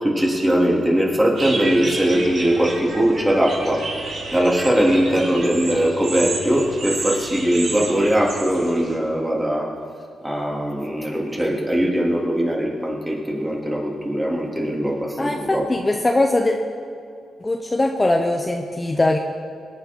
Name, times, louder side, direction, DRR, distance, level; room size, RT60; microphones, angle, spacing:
voice 1, 0.0-3.8 4.3-9.7 10.2-15.6, right 1 dB, 15° right, -2 dB, 3.4 m, -20 dB
sound 1, 1.4-9.0, right 2 dB, 60° right, 3.1 m, -31 dB
voice 2, 5.3-5.6 15.2-16.5 17.4-19.2, left 2 dB, 25° left, 3 dB, 1.1 m, -21 dB
20.0 x 9.1 x 5.6 m, 2.5 s
cardioid pair, 65°, 0 cm